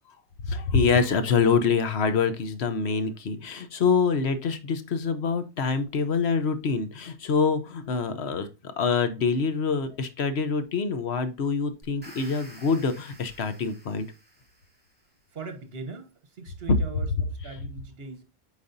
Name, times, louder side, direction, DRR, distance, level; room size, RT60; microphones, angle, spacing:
voice 1, 0.4-14.1, left 5 dB, 80° left, 1.2 m, -25 dB
sound 1, 11.8-15.0, right 1 dB, 10° right, 2.7 m, -50 dB
voice 2, 15.3-18.2, right 4 dB, 65° right, 1.4 m, -40 dB
8.3 x 4.6 x 2.6 m
omnidirectional pair, 1.1 m